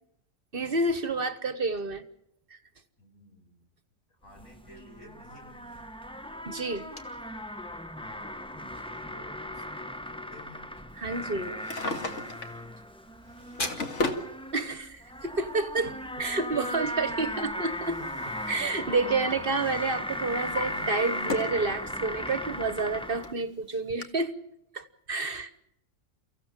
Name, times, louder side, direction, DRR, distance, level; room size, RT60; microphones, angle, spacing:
voice 1, 0.5-2.0 2.5-2.6 6.5-6.9 11.0-11.6 14.5-15.9 16.2-18.1 18.5-24.4 24.7-25.5, right 3 dB, 45° right, 13 dB, 1.2 m, -29 dB
voice 2, 3.0-3.7 4.1-5.9 8.0-10.8 13.8-14.3 15.8-16.2 19.9-21.3, equal, 85° left, 2 dB, 6.4 m, -53 dB
sound 1, 4.3-23.3, equal, 5° left, 0.6 m, -37 dB
sound 2, 5.9-16.7, left 2 dB, 40° left, 2.4 m, -46 dB
Drawer open or close, 11.5-12.6 13.3-14.3 15.4-15.5 17.2-18.8 19.1-19.5 20.0-21.6 22.1-22.2 22.9-23.0 23.2-23.3 24.0-24.1, left 3 dB, 65° left, 2.2 m, -35 dB
29.5 x 15.5 x 7.4 m, 0.81 s
omnidirectional pair, 1.4 m